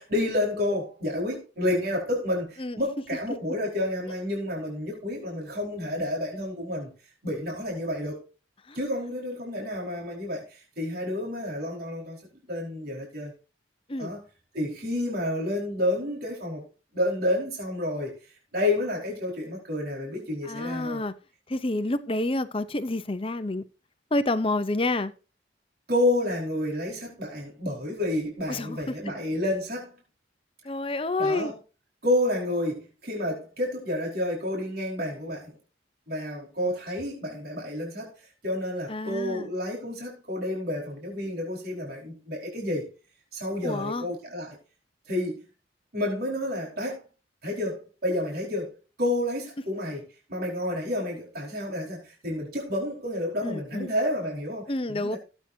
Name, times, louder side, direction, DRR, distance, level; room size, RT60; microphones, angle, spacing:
voice 1, 0.0-6.9 7.2-8.2 8.7-12.2 12.5-13.3 14.0-14.2 14.5-16.6 16.9-18.1 18.5-21.0 25.9-29.9 31.2-31.5 32.0-35.5 36.1-42.9 43.3-44.6 45.1-45.4 45.9-47.0 47.4-48.7 49.0-55.2, left 1 dB, 55° right, 4.8 m, -30 dB
voice 2, 20.4-21.1 21.5-23.6 24.1-25.1 28.5-28.9 30.6-31.5 38.9-39.5 43.6-44.1 53.4-53.9 54.7-55.2, left 2 dB, 30° left, 0.8 m, -28 dB
17.0 x 9.0 x 2.8 m
head